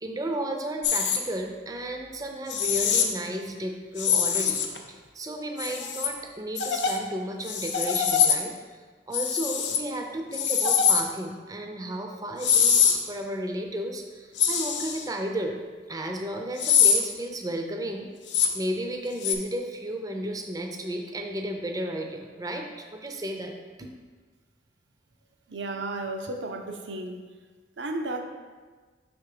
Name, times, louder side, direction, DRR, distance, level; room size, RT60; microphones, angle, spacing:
voice 1, 0.0-4.6 4.9-8.5 9.1-15.6 15.9-18.1 18.5-22.7 22.9-23.5 23.8-23.9, right 1 dB, 20° right, 3 dB, 0.5 m, -33 dB
sound 1, 0.8-1.2 2.5-3.1 4.0-4.8 5.6-6.1 6.6-7.0 7.5-8.3 9.1-9.8 10.3-11.0 12.4-13.0 14.4-15.0 16.6-17.0 18.3-18.5 19.2-19.3, left 7 dB, 85° left, 0.6 m, -23 dB
voice 2, 25.5-27.2 27.8-28.2, right 2 dB, 85° right, 4 dB, 0.7 m, -33 dB
6.1 x 3.5 x 4.9 m, 1.4 s
head